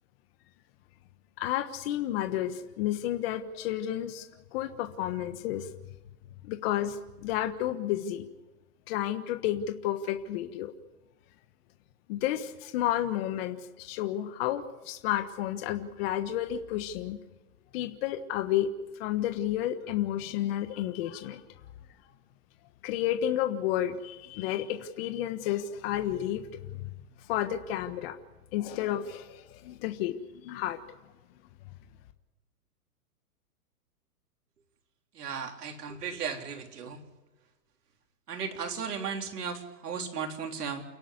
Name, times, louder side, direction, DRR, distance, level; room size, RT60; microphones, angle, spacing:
voice 1, 1.4-4.3 4.5-5.7 6.4-8.3 8.9-10.7 12.1-17.2 17.7-18.7 19.0-21.4 22.8-26.9 27.3-28.1 28.5-30.2 30.4-31.0, left 12 dB, 40° left, 8 dB, 1.4 m, -31 dB
voice 2, 35.1-37.0 38.3-40.8, right 6 dB, 80° right, 4 dB, 3.9 m, -35 dB
29.0 x 11.5 x 9.7 m, 1.1 s
hypercardioid pair, 145°, 46 cm